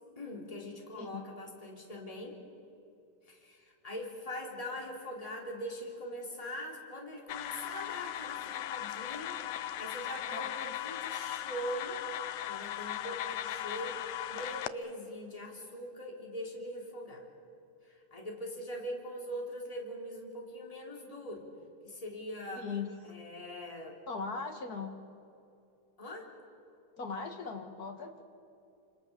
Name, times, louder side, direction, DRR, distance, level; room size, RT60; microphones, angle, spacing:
voice 1, 0.1-2.4 3.2-12.0 12.5-17.3 17.8-21.5 21.8-22.7 23.0-24.0 26.0-26.3, equal, 10° left, -1 dB, 3.4 m, -42 dB
sound 1, 7.3-14.7, left 12 dB, 75° left, 1.6 m, -38 dB
voice 2, 10.3-10.7 22.6-22.9 24.1-24.9 27.0-28.2, left 5 dB, 35° left, 4 dB, 2.0 m, -39 dB
28.0 x 27.0 x 7.0 m, 2.6 s
omnidirectional pair, 3.7 m